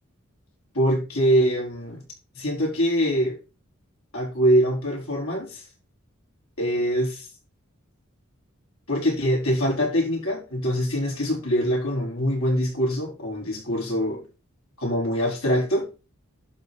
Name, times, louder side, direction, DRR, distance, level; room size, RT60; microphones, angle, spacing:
voice 1, 0.7-2.0 2.3-3.4 4.1-5.6 6.6-7.3 8.9-14.2 14.8-15.9, equal, 90° left, 4.9 m, -24 dB
11.5 x 4.7 x 4.2 m
head